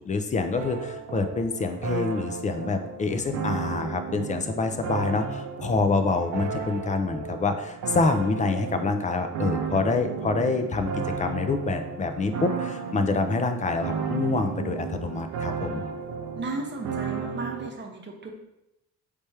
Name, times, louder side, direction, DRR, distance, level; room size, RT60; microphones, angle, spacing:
voice 1, 0.0-10.9 11.2-15.8, left 3 dB, 25° left, 7 dB, 0.4 m, -26 dB
sound 1, 0.6-17.7, right 6 dB, 85° right, 0.6 m, -33 dB
voice 2, 16.3-18.4, right 2 dB, 35° right, 2 dB, 0.9 m, -35 dB
4.2 x 3.4 x 3.3 m, 0.88 s
cardioid pair, 90°, 30 cm